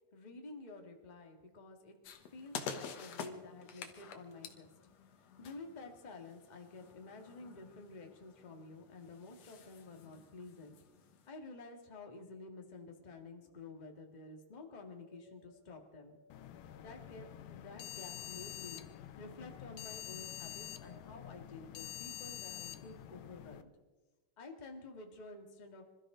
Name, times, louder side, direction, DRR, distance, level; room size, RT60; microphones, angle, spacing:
voice 1, 0.1-2.0 2.3-4.7 5.2-10.7 11.3-16.2 16.8-23.7 24.4-25.9, left 3 dB, 20° left, 2 dB, 1.3 m, -51 dB
sound 1, 2.0-11.3, left 7 dB, 60° left, 2.1 m, -49 dB
sound 2, 4.9-5.7 12.7-21.5, equal, 55° right, 5.7 m, -67 dB
sound 3, 16.3-23.6, left 12 dB, 80° left, 2.4 m, -47 dB
26.5 x 14.0 x 3.9 m, 1.2 s
omnidirectional pair, 3.8 m